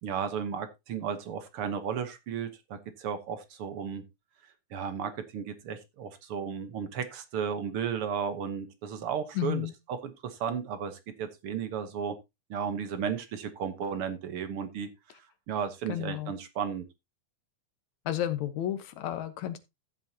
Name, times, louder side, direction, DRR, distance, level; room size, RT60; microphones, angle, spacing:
voice 1, 0.0-4.0 4.4-9.7 10.0-12.2 12.5-16.9, right 7 dB, 60° right, 10 dB, 1.5 m, -34 dB
voice 2, 9.3-9.7 15.9-16.3 18.1-19.6, left 12 dB, 70° left, 10 dB, 2.4 m, -32 dB
14.5 x 7.6 x 2.8 m, 0.22 s
omnidirectional pair, 3.6 m